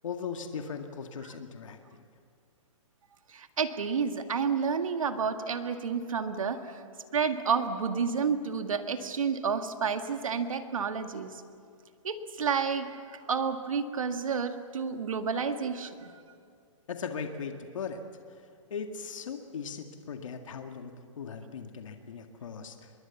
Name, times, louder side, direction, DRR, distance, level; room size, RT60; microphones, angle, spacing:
voice 1, 0.0-2.1 16.9-18.0 18.3-18.4 18.7-22.9, left 6 dB, 70° left, 5 dB, 2.0 m, -39 dB
voice 2, 3.3-6.8 7.1-11.3 12.0-16.1, right 6 dB, 90° right, 7 dB, 1.9 m, -30 dB
25.5 x 22.0 x 7.2 m, 2.3 s
hypercardioid pair, 155°, 17 cm